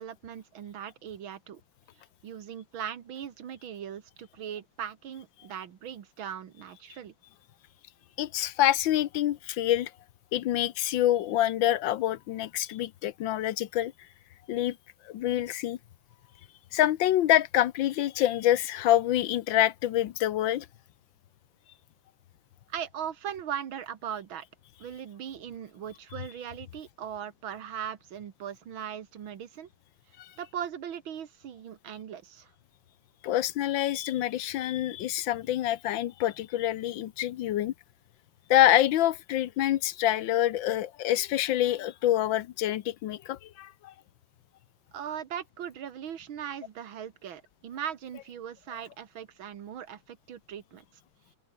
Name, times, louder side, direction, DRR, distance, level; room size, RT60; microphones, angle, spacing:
voice 1, 0.0-1.6 2.2-7.1 22.7-24.5 24.8-29.7 30.4-32.5 44.9-50.9, right 9 dB, 85° right, 2.3 m, -39 dB
voice 2, 8.2-9.9 10.3-13.9 14.5-14.8 15.1-15.8 16.7-20.7 30.2-30.3 33.2-37.7 38.5-43.9, left 13 dB, 75° left, 1.5 m, -26 dB
open air
omnidirectional pair, 2.2 m